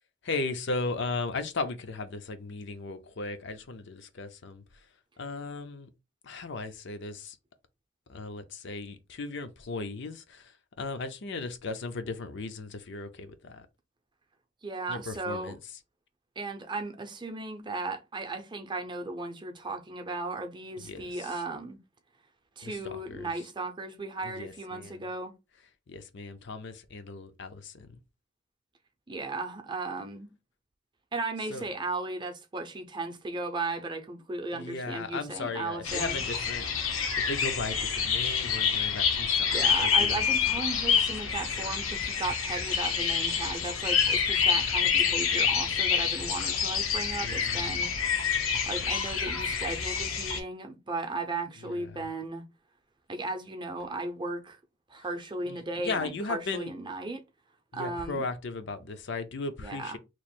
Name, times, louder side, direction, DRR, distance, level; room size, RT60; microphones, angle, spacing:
voice 1, 0.2-4.9 5.2-5.9 6.2-7.4 8.1-13.7 14.9-15.6 20.8-21.4 22.6-23.3 24.2-25.0 25.9-28.0 31.5-31.7 34.5-36.9 37.3-40.2 41.3-41.4 47.1-47.9 48.5-48.6 51.6-51.7 55.5-56.7 57.7-60.0, left 3 dB, 60° left, 0.5 m, -37 dB
voice 2, 14.6-15.6 16.4-21.8 22.6-25.3 29.1-30.3 31.1-36.2 39.5-48.2 48.7-52.4 53.1-54.6 54.9-57.2 57.7-58.2 59.6-60.0, right 2 dB, 25° right, 0.6 m, -36 dB
sound 1, 35.8-50.4, left 7 dB, 85° left, 0.8 m, -27 dB
3.0 x 2.4 x 4.3 m
head